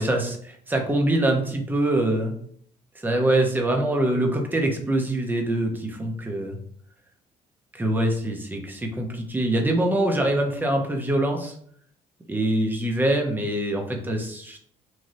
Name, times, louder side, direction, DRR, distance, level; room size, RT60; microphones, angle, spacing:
voice 1, 0.0-2.3 2.9-6.6 7.7-11.6 12.3-14.6, right 1 dB, 15° right, 2 dB, 0.6 m, -24 dB
3.1 x 2.6 x 2.6 m, 0.62 s
cardioid pair, 105°, 15 cm